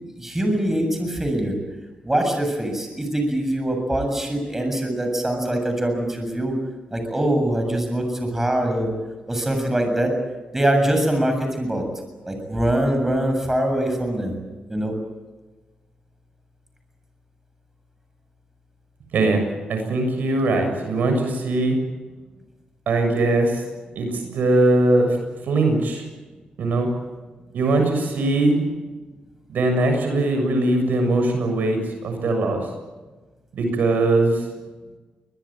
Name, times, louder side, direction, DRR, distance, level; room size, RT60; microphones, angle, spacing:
voice 1, 0.2-1.6 2.0-6.5 6.9-8.9 9.3-10.1 10.5-11.8 12.2-14.4 14.7-14.9, right 1 dB, 15° right, 4 dB, 7.3 m, -23 dB
voice 2, 19.7-21.8 22.9-23.6 24.0-25.2 25.4-26.0 26.6-26.9 27.5-28.6 29.5-32.7 33.5-34.5, right 2 dB, 75° right, 5 dB, 7.2 m, -20 dB
23.5 x 21.0 x 9.0 m, 1.3 s
cardioid pair, 90°, 3 cm